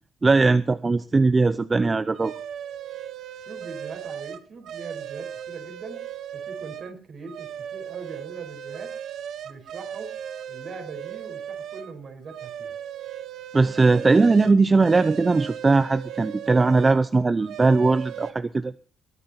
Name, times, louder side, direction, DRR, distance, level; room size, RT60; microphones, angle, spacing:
voice 1, 0.2-2.3 13.5-18.7, right 3 dB, 25° right, 14 dB, 0.6 m, -19 dB
sound 1, 2.1-6.9 7.3-11.9 12.3-17.1 17.4-18.3, right 9 dB, 75° right, 1.1 m, -37 dB
voice 2, 3.4-6.0 6.3-8.9 9.4-10.1 10.5-12.8, right 4 dB, 55° right, 5 dB, 5.0 m, -41 dB
21.5 x 9.4 x 4.3 m, 0.39 s
cardioid pair, 90°, 0 cm